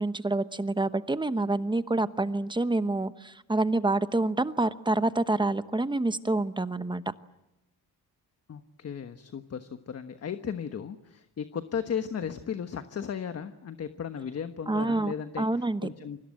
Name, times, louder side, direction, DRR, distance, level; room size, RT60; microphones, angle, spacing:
voice 1, 0.0-7.0 14.7-15.9, right 2 dB, 10° right, 12 dB, 0.9 m, -27 dB
voice 2, 8.5-16.2, left 7 dB, 40° left, 9 dB, 1.3 m, -35 dB
29.5 x 24.0 x 7.8 m, 0.93 s
cardioid pair, 125°, 37 cm